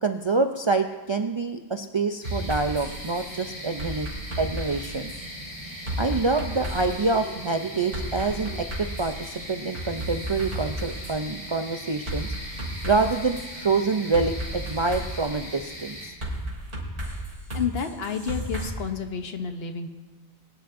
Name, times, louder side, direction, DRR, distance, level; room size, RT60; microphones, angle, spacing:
voice 1, 0.0-4.1 4.4-5.1 6.0-12.3 12.8-16.1, right 3 dB, 45° right, 5 dB, 0.4 m, -26 dB
sound 1, 2.2-16.1, equal, 30° left, 4.6 m, -39 dB
sound 2, 2.2-2.9 3.8-5.2 5.9-7.0 7.9-9.2 9.7-11.2 12.1-13.5 14.1-15.3 16.2-18.7, right 1 dB, 85° right, 3.2 m, -33 dB
voice 2, 17.5-19.9, left 6 dB, 70° left, 7 dB, 1.1 m, -30 dB
22.0 x 10.0 x 2.6 m, 1.2 s
omnidirectional pair, 1.1 m